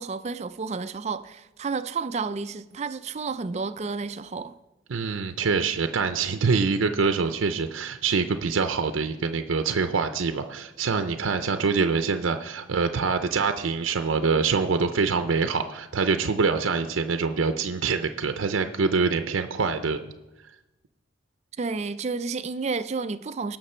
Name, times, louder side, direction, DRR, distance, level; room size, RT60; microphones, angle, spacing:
voice 1, 0.0-4.6 21.6-23.6, right 4 dB, 35° right, 0.4 m, -31 dB
voice 2, 4.9-20.1, right 5 dB, 85° right, 0.6 m, -25 dB
18.0 x 5.9 x 4.3 m
head